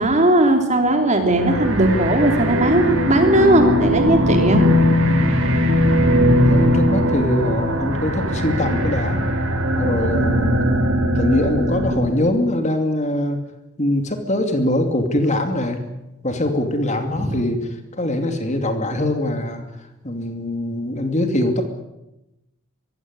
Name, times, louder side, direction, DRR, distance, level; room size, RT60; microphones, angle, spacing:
voice 1, 0.0-4.6 17.2-17.4, right 1 dB, 30° right, 5 dB, 3.5 m, -17 dB
sound 1, 1.4-12.2, equal, 60° right, 3.7 m, -19 dB
voice 2, 6.4-9.2 9.8-10.6 11.1-13.5 13.8-15.8 16.2-17.6 17.9-19.6 20.0-21.6, left 1 dB, 30° left, 6 dB, 2.6 m, -22 dB
23.5 x 16.5 x 9.8 m, 0.92 s
head